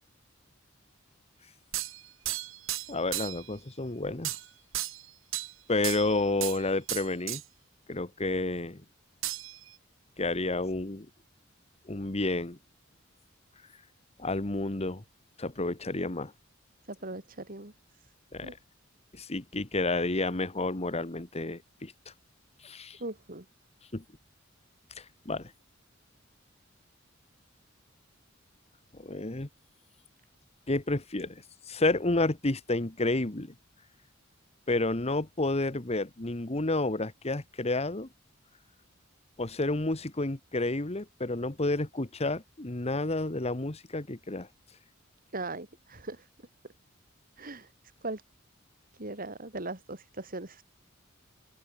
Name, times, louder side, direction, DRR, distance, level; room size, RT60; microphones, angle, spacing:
sound 1, 1.7-3.5 4.2-4.5 4.7-5.5 5.8-6.6 6.9-7.4 9.2-9.7, right 14 dB, 80° right, 3.1 m, -34 dB
voice 1, 2.9-4.4 5.7-7.4 7.9-8.8 10.2-11.1 11.9-12.6 14.2-15.0 15.4-16.3 18.3-18.6 19.1-21.9 22.6-23.0 23.9-24.0 25.2-25.5 28.9-29.5 30.7-33.5 34.7-38.1 39.4-44.5, left 2 dB, 30° left, 1.4 m, -30 dB
voice 2, 16.9-17.7 18.4-18.5 23.0-23.4 45.3-46.3 47.4-47.7 48.0-48.2 48.9-50.6, right 2 dB, 45° right, 3.9 m, -39 dB
open air
head